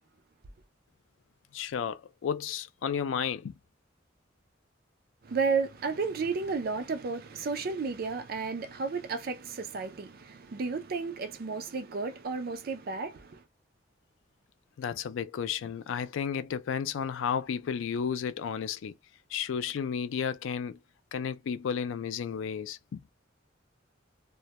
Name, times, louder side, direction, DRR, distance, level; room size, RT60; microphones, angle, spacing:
voice 1, 1.5-3.5 14.8-18.9 19.3-20.8 21.1-23.0, left 7 dB, 85° left, 0.4 m, -32 dB
voice 2, 5.2-13.4, right 4 dB, 50° right, 0.4 m, -32 dB
2.2 x 2.1 x 2.8 m
head